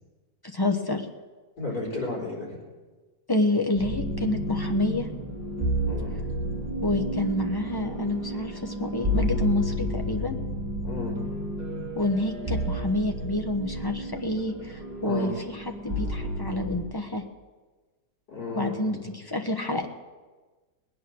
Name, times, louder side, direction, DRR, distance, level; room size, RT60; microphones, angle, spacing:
voice 1, 0.5-1.0 3.3-5.1 6.8-10.4 11.9-17.2 18.5-19.9, left 2 dB, 15° left, 4 dB, 0.8 m, -28 dB
voice 2, 1.6-2.6 5.9-6.1 10.8-11.2 15.0-15.3 18.3-18.9, left 2 dB, 55° left, -4 dB, 4.7 m, -33 dB
sound 1, 3.8-16.8, equal, 20° right, 3.7 m, -31 dB
20.5 x 8.8 x 6.3 m, 1.3 s
omnidirectional pair, 1.9 m